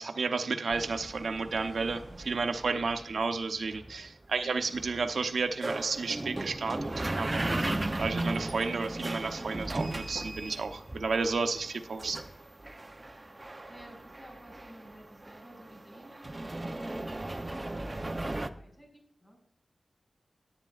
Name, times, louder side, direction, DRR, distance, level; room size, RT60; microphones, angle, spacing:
voice 1, 0.0-12.2, right 4 dB, 85° right, 6 dB, 0.8 m, -32 dB
sound 1, 0.7-18.5, right 2 dB, 25° right, 0.6 m, -37 dB
voice 2, 4.3-4.6 13.1-19.4, equal, 30° left, 0 dB, 5.4 m, -53 dB
18.0 x 8.8 x 2.4 m, 0.66 s
wide cardioid pair, 105°, 0 cm